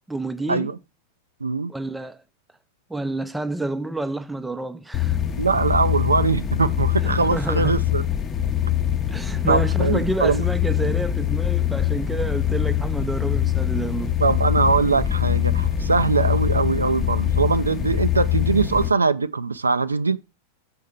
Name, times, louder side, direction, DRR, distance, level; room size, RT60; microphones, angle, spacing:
voice 1, 0.1-0.7 1.7-2.2 2.9-5.2 7.0-7.9 9.1-14.2, right 2 dB, 5° right, 0.5 m, -29 dB
voice 2, 1.4-1.7 5.4-8.0 9.5-10.4 14.2-20.2, right 4 dB, 80° right, 0.4 m, -22 dB
sound 1, 4.9-18.9, left 11 dB, 25° left, 0.7 m, -23 dB
6.3 x 4.4 x 5.0 m
figure-of-eight pair, 90°, 0 cm